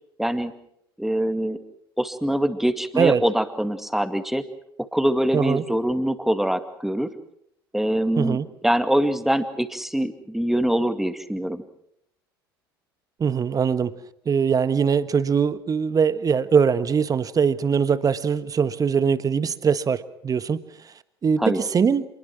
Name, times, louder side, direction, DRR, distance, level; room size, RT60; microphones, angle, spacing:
voice 1, 0.2-0.5 1.0-1.6 2.0-4.4 4.8-7.1 7.7-8.4 8.6-11.6 21.4-21.6, right 1 dB, ahead, 9 dB, 2.2 m, -23 dB
voice 2, 5.3-5.6 8.2-8.5 13.2-13.9 14.2-20.6 21.2-22.0, right 6 dB, 30° right, 14 dB, 1.4 m, -22 dB
27.0 x 21.0 x 6.1 m, 0.73 s
figure-of-eight pair, 65°, 12 cm